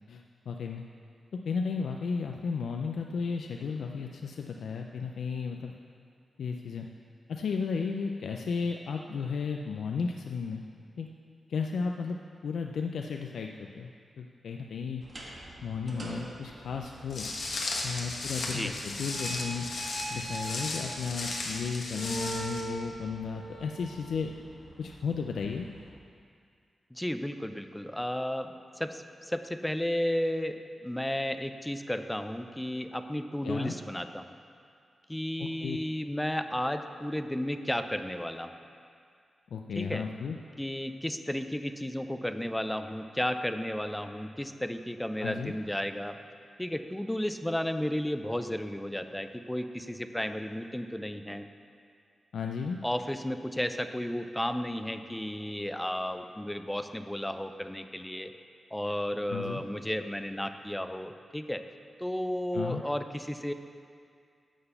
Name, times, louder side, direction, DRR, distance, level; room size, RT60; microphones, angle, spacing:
voice 1, 0.1-0.8 1.4-5.7 6.4-6.9 7.3-10.6 11.0-11.1 11.5-12.2 12.4-13.9 14.2-15.0 15.6-17.3 17.8-19.7 20.1-24.3 24.8-25.7 33.4-33.7 35.4-35.8 39.5-40.4 45.2-45.5 52.3-52.8 59.3-59.6 62.5-62.8, left 5 dB, 85° left, 3 dB, 0.4 m, -34 dB
sound 1, 15.0-25.9, right 2 dB, 35° right, 1.3 m, -43 dB
Walk footsteps, 17.1-22.6, left 2 dB, 60° left, 1.2 m, -35 dB
voice 2, 26.9-34.4 35.1-38.5 39.8-40.0 40.6-46.2 46.6-51.5 52.8-58.3 58.7-61.6 62.0-63.5, left 1 dB, 5° left, 8 dB, 0.4 m, -33 dB
11.0 x 4.0 x 7.8 m, 2.3 s
wide cardioid pair, 165°, 0 cm